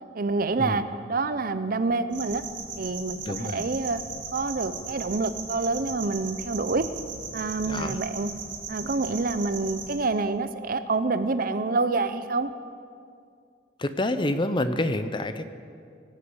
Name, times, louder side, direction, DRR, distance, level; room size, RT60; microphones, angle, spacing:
voice 1, 0.1-0.8 1.1-2.4 2.8-4.0 4.3-6.9 7.3-8.3 8.7-12.5, right 3 dB, 50° right, 12 dB, 0.6 m, -27 dB
sound 1, 2.1-10.0, right 5 dB, 90° right, 2.9 m, -38 dB
voice 2, 3.2-3.6 7.7-8.0 13.8-15.5, left 1 dB, 25° left, 10 dB, 0.6 m, -27 dB
18.5 x 8.3 x 8.0 m, 2.3 s
head